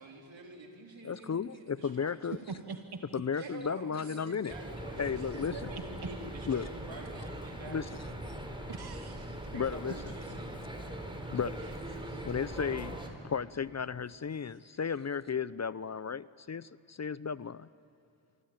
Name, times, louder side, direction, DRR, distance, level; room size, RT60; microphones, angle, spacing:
voice 1, 0.0-2.5 3.4-8.4 9.5-10.6, right 3 dB, 75° right, 1 dB, 4.0 m, -47 dB
voice 2, 1.0-2.4 3.1-4.5 5.0-5.6 6.5-6.7 7.7-7.9 9.5-9.9 11.3-11.6 12.2-17.7, left 6 dB, 35° left, 18 dB, 0.6 m, -34 dB
voice 3, 2.5-3.0 3.3-3.5 5.2-5.3 6.5-6.6 8.7-9.4 11.6-12.2, right 4 dB, 55° right, 6 dB, 1.4 m, -45 dB
sound 1, 4.5-13.1, right 1 dB, 10° right, 4.2 m, -41 dB
26.0 x 23.0 x 8.9 m, 2.5 s
cardioid pair, 50°, 45 cm